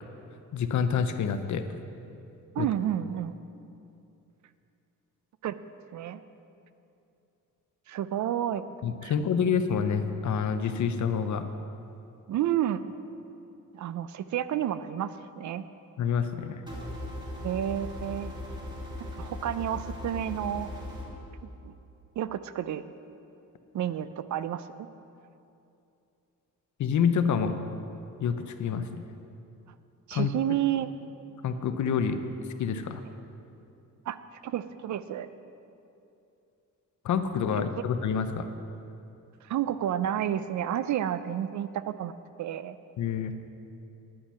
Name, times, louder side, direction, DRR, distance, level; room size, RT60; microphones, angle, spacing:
voice 1, 0.5-1.6 2.6-2.7 8.8-11.4 16.0-16.6 26.8-27.6 28.2-29.0 30.1-30.3 31.4-32.2 32.6-33.0 37.0-38.5 43.0-43.3, left 7 dB, 60° left, 9 dB, 0.7 m, -27 dB
voice 2, 2.6-3.3 5.4-5.5 5.9-6.2 7.9-8.7 9.0-9.1 12.3-12.8 13.7-15.6 17.4-18.3 19.0-20.7 21.4-21.7 22.2-22.8 23.7-24.9 30.1-30.9 34.1-34.2 34.4-35.3 39.4-42.1 42.4-42.8, right 11 dB, 60° right, 14 dB, 0.4 m, -30 dB
sound 1, 16.7-21.1, left 1 dB, 15° right, 2.1 m, -38 dB
10.0 x 8.7 x 5.6 m, 2.7 s
cardioid pair, 135°, 34 cm